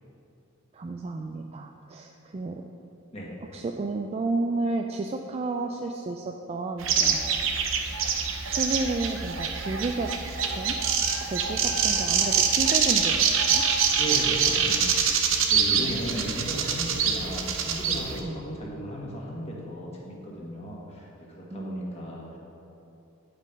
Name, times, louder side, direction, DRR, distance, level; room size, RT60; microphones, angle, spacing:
voice 1, 0.7-2.6 3.5-7.3 8.4-10.1 10.5-10.8 11.2-13.6 15.7-16.3 18.2-18.4 21.5-22.0, right 3 dB, 30° right, 3 dB, 0.3 m, -32 dB
sound 1, 6.8-18.2, right 6 dB, 70° right, 0.7 m, -25 dB
voice 2, 14.0-22.4, equal, 30° left, -4 dB, 1.6 m, -36 dB
9.4 x 5.2 x 5.3 m, 2.9 s
head